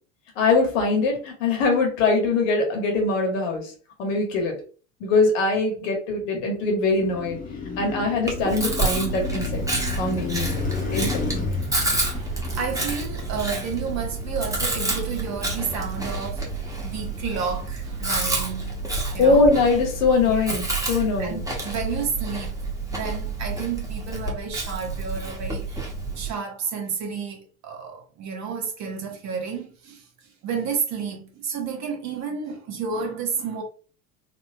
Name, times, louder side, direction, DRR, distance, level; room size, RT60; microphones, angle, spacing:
voice 1, 0.4-3.7 4.0-4.5 5.0-7.4 7.8-9.4 10.0-11.2 19.2-21.4, left 3 dB, 60° left, 1.5 m, -22 dB
Car passing by, 6.8-19.0, left 5 dB, 20° left, 1.1 m, -34 dB
Chewing mastication, 8.3-26.3, right 3 dB, 10° right, 1.2 m, -29 dB
voice 2, 11.5-18.7 19.1-19.5 20.3-20.5 21.0-22.6 22.9-33.6, right 6 dB, 40° right, 1.2 m, -31 dB
4.2 x 2.7 x 2.3 m
figure-of-eight pair, 70°, 43 cm